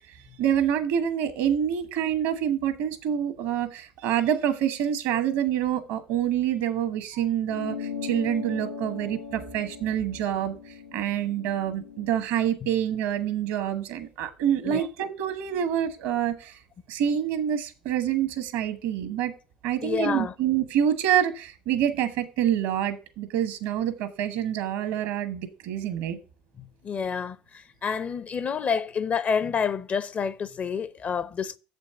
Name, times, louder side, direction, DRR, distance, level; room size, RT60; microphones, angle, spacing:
voice 1, 0.4-16.6 16.9-19.3 19.6-26.2, right 10 dB, 75° right, 1.2 m, -27 dB
sound 1, 7.5-12.3, left 6 dB, 75° left, 0.9 m, -38 dB
voice 2, 19.8-20.3 26.8-31.6, left 6 dB, 45° left, 0.7 m, -28 dB
7.2 x 5.3 x 6.7 m
hypercardioid pair, 65°, 4 cm